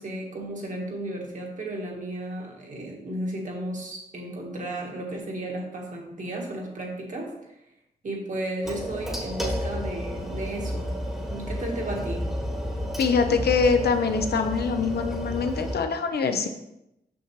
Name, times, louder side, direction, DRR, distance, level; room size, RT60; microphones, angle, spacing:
voice 1, 0.0-7.3 8.0-10.9 11.3-12.3, right 1 dB, 55° right, -1 dB, 1.4 m, -34 dB
sound 1, 8.6-15.8, equal, ahead, 1.1 m, -31 dB
voice 2, 13.0-16.5, left 5 dB, 90° left, 7 dB, 0.7 m, -24 dB
6.5 x 6.2 x 3.1 m, 0.85 s
wide cardioid pair, 170°, 16 cm